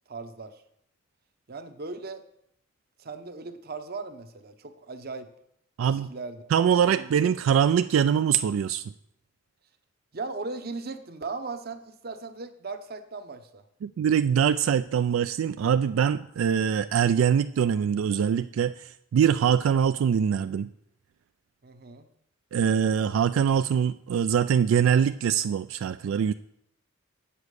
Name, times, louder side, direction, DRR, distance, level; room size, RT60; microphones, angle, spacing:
voice 1, 0.1-0.6 1.5-2.2 3.0-5.3 5.8-6.5 6.8-7.1 10.1-13.6 21.6-22.1, right 3 dB, 50° right, 9 dB, 0.8 m, -38 dB
voice 2, 5.8-6.1 6.5-8.8 13.8-20.7 22.5-26.3, right 8 dB, 85° right, 12 dB, 0.3 m, -23 dB
8.3 x 7.0 x 6.4 m, 0.76 s
head